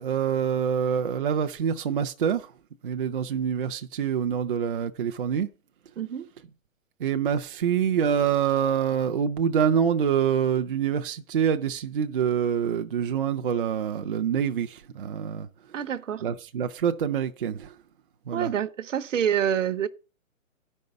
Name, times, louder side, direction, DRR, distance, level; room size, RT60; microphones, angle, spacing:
voice 1, 0.0-2.5 2.8-5.5 7.0-15.8 16.2-17.8 18.3-18.5, right 8 dB, 40° right, 0.5 m, -26 dB
voice 2, 6.0-6.3 15.7-16.2 18.3-19.9, right 9 dB, 65° right, 0.8 m, -27 dB
10.5 x 5.4 x 6.6 m
hypercardioid pair, 155°, 41 cm